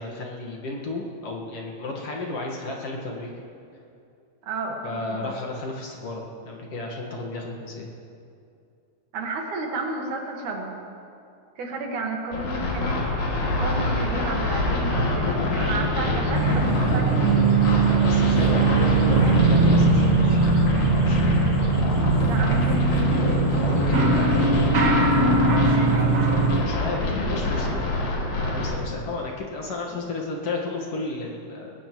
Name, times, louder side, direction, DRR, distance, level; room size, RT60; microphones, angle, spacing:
voice 1, 0.0-3.3 4.8-7.9 17.8-20.4 20.9-21.4 23.6-24.7 26.5-31.7, left 2 dB, 55° left, -1 dB, 2.4 m, -33 dB
voice 2, 4.4-5.3 9.1-10.8 11.6-13.0 13.6-17.3 22.2-23.1 25.6-26.3, right 3 dB, 75° right, 0 dB, 3.1 m, -32 dB
sound 1, 12.3-28.7, left 2 dB, 85° left, 3.7 m, -26 dB
sound 2, 16.3-26.6, right 3 dB, 45° right, 1.0 m, -20 dB
19.5 x 17.5 x 3.1 m, 2.6 s
omnidirectional pair, 3.5 m